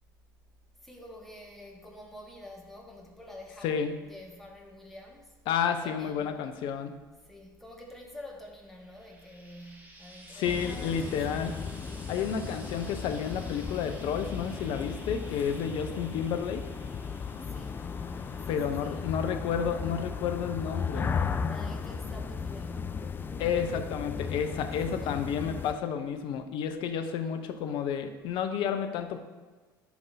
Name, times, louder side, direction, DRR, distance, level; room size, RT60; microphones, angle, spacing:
voice 1, 0.8-5.4 5.8-6.4 7.2-11.6 17.2-17.9 18.3-19.1 21.5-23.2 25.0-25.2, left 1 dB, ahead, -1 dB, 1.4 m, -48 dB
voice 2, 5.5-6.9 10.3-11.5 12.1-16.6 18.5-21.1 23.4-29.2, left 7 dB, 45° left, 7 dB, 0.7 m, -31 dB
Frying (food), 8.6-22.0 23.0-23.1, right 1 dB, 15° right, 1.2 m, -54 dB
sound 1, 10.4-25.7, left 5 dB, 20° left, 0.3 m, -36 dB
11.5 x 5.1 x 2.6 m, 1.3 s
figure-of-eight pair, 65°, 12 cm